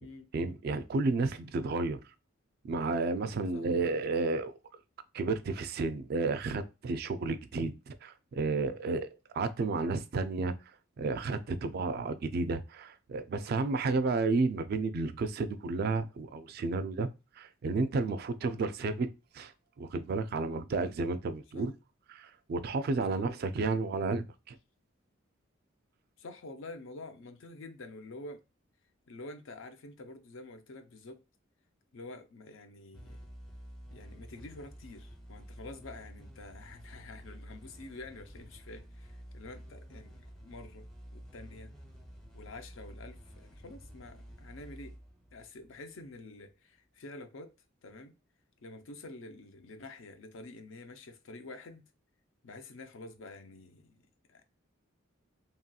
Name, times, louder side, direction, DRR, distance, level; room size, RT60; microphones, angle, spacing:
voice 1, 0.3-2.0 2.6-4.5 5.1-10.6 11.0-17.1 17.4-19.1 19.3-19.5 19.8-21.7 22.1-24.5, right 3 dB, 50° right, 0.3 m, -32 dB
voice 2, 26.2-28.4 29.1-31.2 31.9-33.2 33.9-40.9 41.1-41.7 42.3-45.0 45.3-47.5 47.8-48.2 48.6-51.8 52.4-54.4, left 2 dB, 70° left, 0.5 m, -48 dB
sound 1, 32.9-46.2, equal, ahead, 0.8 m, -50 dB
2.9 x 2.8 x 2.2 m
head